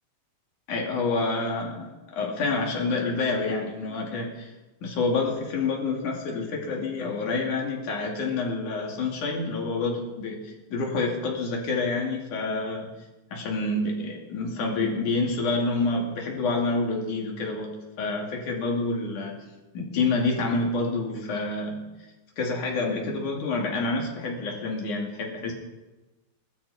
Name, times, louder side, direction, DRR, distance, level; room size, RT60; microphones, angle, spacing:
voice 1, 0.7-4.5 4.8-12.9 13.3-19.4 19.7-21.8 22.4-25.5, left 3 dB, 50° left, -1 dB, 3.5 m, -28 dB
19.5 x 13.0 x 4.2 m, 1.1 s
omnidirectional pair, 4.8 m